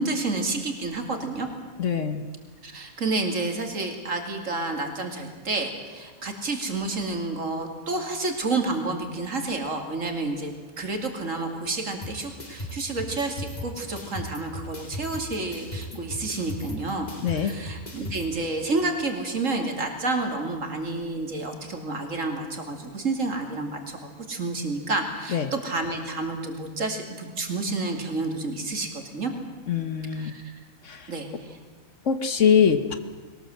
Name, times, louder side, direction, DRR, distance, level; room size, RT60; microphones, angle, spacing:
voice 1, 0.0-1.5 2.6-29.3 30.2-30.4 31.1-31.6, right 3 dB, 60° right, 4 dB, 3.0 m, -30 dB
voice 2, 1.8-2.2 17.2-17.5 25.3-25.5 29.7-30.3 30.8-31.1 32.0-33.0, left 7 dB, 60° left, 10 dB, 1.4 m, -23 dB
sound 1, 12.0-18.3, left 1 dB, 30° left, 2.4 m, -38 dB
21.5 x 19.0 x 7.9 m, 1.4 s
omnidirectional pair, 1.5 m